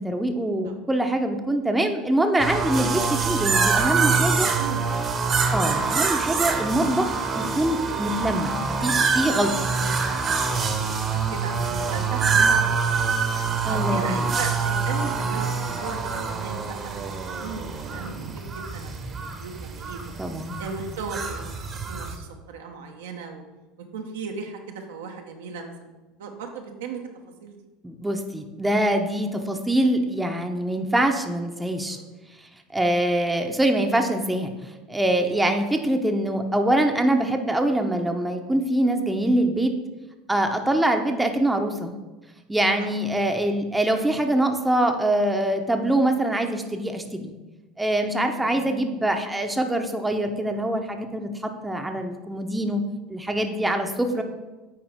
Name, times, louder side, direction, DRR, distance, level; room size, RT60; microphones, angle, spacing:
voice 1, 0.0-4.5 5.5-9.7 13.6-14.3 20.2-20.6 27.8-32.0 32.7-34.5 34.9-39.7 40.3-41.9 42.5-47.3 47.8-52.8 53.1-54.2, right 1 dB, 10° right, 4 dB, 0.8 m, -24 dB
sound 1, 2.4-22.2, right 5 dB, 35° right, 1.0 m, -25 dB
voice 2, 4.3-4.8 5.3-5.4 9.8-10.2 10.6-13.3 13.7-20.0 20.6-21.5 21.9-23.4 23.9-25.9 26.2-27.0 27.4-27.6 29.2-29.3 31.9-32.1 35.3-35.5 42.8-42.9 48.4-48.6 54.2-54.3, right 5 dB, 75° right, 3 dB, 0.9 m, -37 dB
9.0 x 4.7 x 3.6 m, 1.1 s
hypercardioid pair, 75°, 0 cm